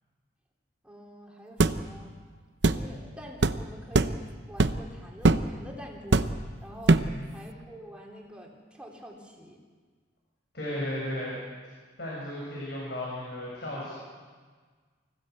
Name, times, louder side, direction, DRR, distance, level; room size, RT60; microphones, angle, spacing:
voice 1, 0.8-2.1 2.6-4.2 4.5-6.3 6.6-7.0 7.3-9.6, equal, 5° right, -2 dB, 3.7 m, -46 dB
sound 1, 1.6-1.8 2.6-2.8 3.4-3.6 3.9-4.2 4.6-4.9 5.2-5.5 6.1-6.5 6.9-7.2, right 2 dB, 65° right, 0.8 m, -22 dB
voice 2, 2.7-3.1 6.9-7.3 10.5-11.4 12.0-13.9, left 1 dB, 60° left, -5 dB, 7.3 m, -35 dB
25.0 x 16.5 x 8.2 m, 1.5 s
head